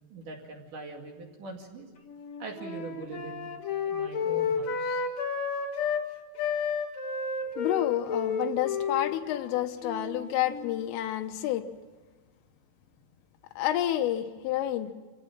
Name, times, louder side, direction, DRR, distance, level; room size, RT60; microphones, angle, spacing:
voice 1, 0.1-1.9 2.4-3.5 3.8-5.0, right 3 dB, 50° right, 1 dB, 3.2 m, -42 dB
Wind instrument woodwind instrument, 2.1-6.1 6.4-10.9, left 5 dB, 55° left, 2.0 m, -31 dB
voice 2, 7.6-11.7 13.6-14.9, left 12 dB, 85° left, 7 dB, 3.8 m, -29 dB
26.5 x 16.5 x 7.5 m, 1.4 s
omnidirectional pair, 5.8 m